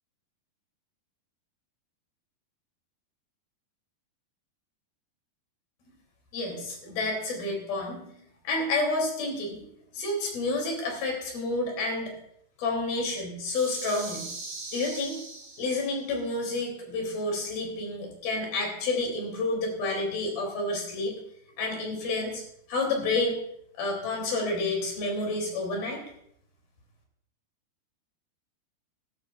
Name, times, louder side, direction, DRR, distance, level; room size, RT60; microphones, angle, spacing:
voice 1, 6.3-9.6 9.9-12.1 12.6-14.3 14.7-15.2 15.6-21.1 21.6-22.4 22.7-23.4 23.7-26.0, left 2 dB, 60° left, 1 dB, 4.7 m, -29 dB
sound 1, 13.5-16.1, right 3 dB, 50° right, 5.8 m, -40 dB
20.0 x 12.5 x 2.4 m, 0.71 s
omnidirectional pair, 5.0 m